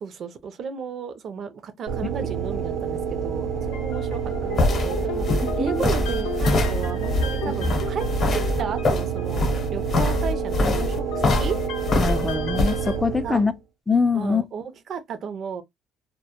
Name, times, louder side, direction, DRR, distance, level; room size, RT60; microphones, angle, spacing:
voice 1, 0.0-8.1 8.3-11.6 13.2-13.4 14.1-15.6, right 6 dB, 50° right, 0.4 m, -34 dB
sound 1, 1.9-13.6, right 7 dB, 90° right, 0.7 m, -29 dB
sound 2, 3.4-13.0, left 7 dB, 90° left, 0.5 m, -37 dB
sound 3, 4.1-12.8, left 2 dB, 45° left, 0.7 m, -24 dB
voice 2, 5.4-5.8 7.5-7.7 12.0-13.5 13.9-14.4, left 4 dB, 10° left, 0.3 m, -24 dB
2.1 x 2.0 x 2.9 m
cardioid pair, 115°, 0 cm